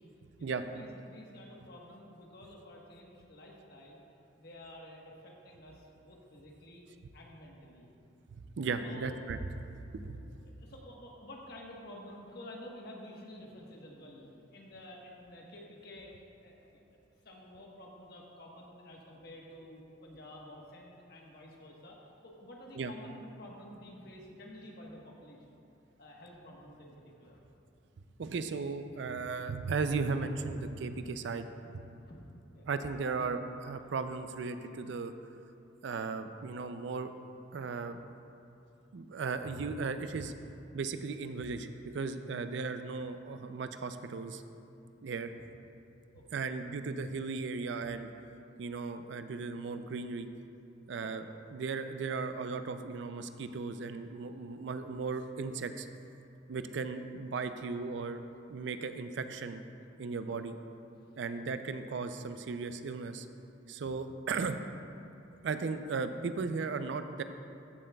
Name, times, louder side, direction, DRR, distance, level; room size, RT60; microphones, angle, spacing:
voice 1, 0.4-4.0 4.4-6.8 7.1-7.9 8.8-9.2 10.4-16.1 16.4-16.7 17.2-22.0 22.2-25.6 26.0-27.4 31.6-32.2 32.5-32.7 45.3-45.4 46.1-46.5 51.0-51.1 60.3-60.4 61.1-61.5, left 1 dB, 55° left, -2 dB, 1.2 m, -50 dB
voice 2, 8.3-9.4 9.8-10.2 22.8-22.9 28.2-31.5 31.7-31.8 32.7-35.1 35.8-37.1 37.5-38.0 38.9-40.3 40.7-41.7 41.9-44.4 45.0-45.3 46.3-48.1 48.6-50.3 50.9-51.2 51.5-55.9 56.5-58.2 58.5-59.6 60.0-60.5 61.2-63.3 63.7-64.6 65.4-67.2, right 4 dB, 65° right, 9 dB, 0.4 m, -36 dB
14.0 x 7.7 x 2.3 m, 2.7 s
head